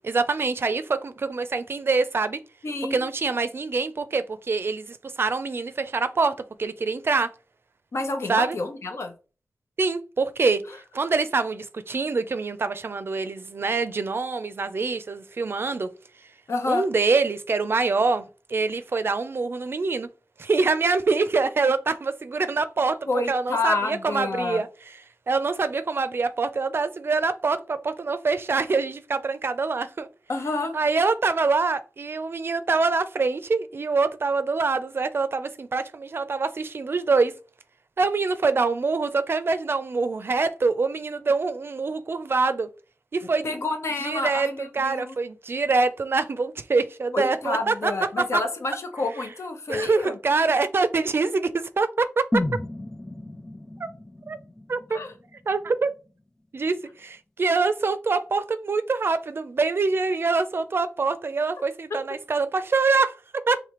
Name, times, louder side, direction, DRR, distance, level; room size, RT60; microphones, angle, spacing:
voice 1, 0.0-2.4 2.9-7.3 8.3-8.6 9.8-10.6 10.9-15.9 16.7-20.1 20.4-23.0 23.3-24.7 25.3-30.1 30.7-37.3 38.0-42.7 43.1-43.5 44.0-47.9 48.3-48.4 49.7-52.4 53.8-53.9 54.3-54.4 54.7-55.0 55.5-55.9 56.5-63.6, right 4 dB, 55° right, 0.4 m, -25 dB
voice 2, 2.6-3.0 7.9-9.1 16.5-16.8 23.1-24.6 30.3-30.7 43.4-45.1 47.1-50.2 54.9-55.1, left 3 dB, 70° left, 0.9 m, -28 dB
sound 1, 52.3-56.3 56.6-56.7, left 1 dB, 10° left, 0.4 m, -33 dB
4.9 x 3.1 x 3.0 m
wide cardioid pair, 85°, 5 cm